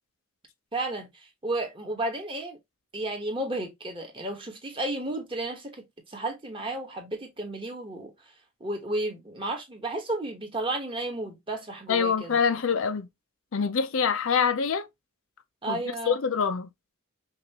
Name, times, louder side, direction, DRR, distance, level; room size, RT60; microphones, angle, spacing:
voice 1, 0.7-2.6 2.9-8.3 8.6-12.4 15.6-16.2, right 2 dB, 25° right, 1.1 m, -33 dB
voice 2, 11.9-13.1 13.5-14.9 15.7-15.8 16.1-16.7, left 6 dB, 70° left, 0.5 m, -25 dB
5.3 x 2.5 x 2.9 m
head